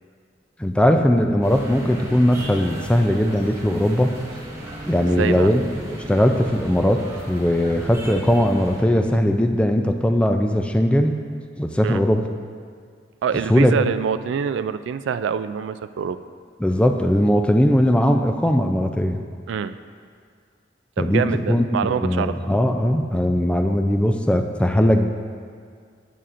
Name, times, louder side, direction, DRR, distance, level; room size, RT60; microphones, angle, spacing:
voice 1, 0.6-4.1 4.9-5.6 6.1-11.2 11.6-12.2 13.5-13.8 16.6-19.2 21.0-25.1, equal, 5° left, 5 dB, 0.4 m, -19 dB
sound 1, 1.4-8.8, equal, 15° right, 1.1 m, -35 dB
voice 2, 5.1-5.5 11.8-12.0 13.2-16.2 19.5-19.8 21.0-22.4, right 7 dB, 85° right, 12 dB, 0.3 m, -25 dB
11.0 x 8.9 x 2.5 m, 2.1 s
head